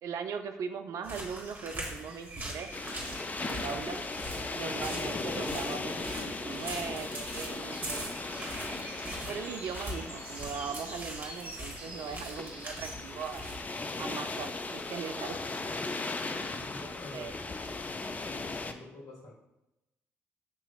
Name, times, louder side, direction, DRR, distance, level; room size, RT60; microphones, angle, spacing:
voice 1, 0.0-2.7 3.4-4.0 4.5-8.1 9.3-13.4 14.0-15.4 16.5-17.3, right 6 dB, 55° right, 7 dB, 0.3 m, -39 dB
sound 1, 1.0-13.7, right 1 dB, 30° right, 1.5 m, -42 dB
sound 2, 2.7-18.7, left 3 dB, 25° left, 0.4 m, -38 dB
voice 2, 16.6-17.3 18.2-19.3, left 2 dB, 60° left, -2 dB, 1.4 m, -48 dB
6.7 x 2.9 x 2.4 m, 0.92 s
figure-of-eight pair, 45°, 7 cm